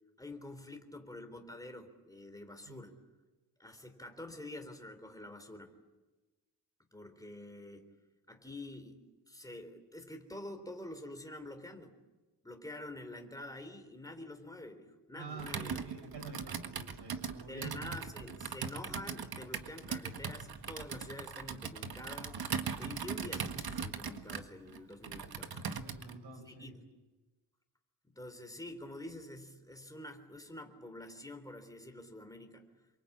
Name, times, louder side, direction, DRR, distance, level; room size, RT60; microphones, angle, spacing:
voice 1, 0.2-2.9 3.6-5.7 6.9-7.9 8.3-9.0 9.3-11.9 12.4-15.8 17.5-22.4 22.8-25.6 26.5-26.7 28.0-32.7, left 1 dB, 10° left, 6 dB, 3.7 m, -47 dB
voice 2, 15.2-18.0 25.7-26.8, right 4 dB, 85° right, 5 dB, 6.9 m, -47 dB
Computer keyboard, 15.4-26.2, right 6 dB, 65° right, 1.7 m, -40 dB
28.0 x 24.0 x 8.7 m, 1.2 s
wide cardioid pair, 125°, 40 cm